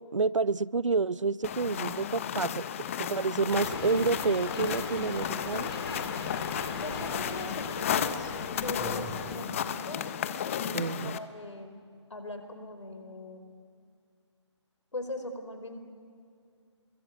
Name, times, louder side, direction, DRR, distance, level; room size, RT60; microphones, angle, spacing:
voice 1, 0.0-2.6 3.0-5.7 10.7-11.2, right 4 dB, 85° right, 0.7 m, -29 dB
sound 1, 1.4-11.2, left 9 dB, 25° left, 0.8 m, -34 dB
sound 2, 3.4-9.4, right 1 dB, ahead, 2.8 m, -48 dB
sound 3, 3.5-10.5, left 3 dB, 55° left, 4.1 m, -40 dB
voice 2, 6.8-11.7 12.1-13.4 14.9-15.8, left 2 dB, 80° left, 4.7 m, -41 dB
28.5 x 22.0 x 8.5 m
figure-of-eight pair, 155°, 16 cm